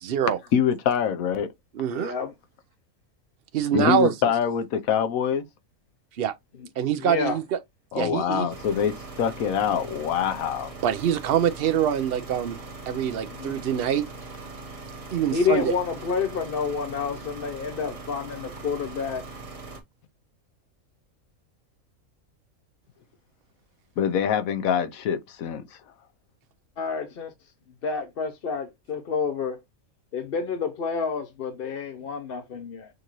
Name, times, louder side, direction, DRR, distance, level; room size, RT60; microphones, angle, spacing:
voice 1, 0.0-0.4 1.7-2.1 3.5-4.1 6.2-6.3 6.8-7.6 7.9-8.5 10.8-12.6 12.9-14.0 15.1-15.7, right 9 dB, 55° right, 0.7 m, -24 dB
voice 2, 0.5-1.5 3.7-5.4 7.9-10.7 24.0-25.8, left 8 dB, 75° left, 1.1 m, -25 dB
voice 3, 1.9-2.3 7.0-7.4 12.9-13.6 15.3-19.3 26.8-27.3 27.8-29.6 30.1-32.9, left 5 dB, 50° left, 0.8 m, -29 dB
sound 1, 8.5-19.8, right 3 dB, 30° right, 1.0 m, -41 dB
6.5 x 2.6 x 3.0 m
omnidirectional pair, 1.5 m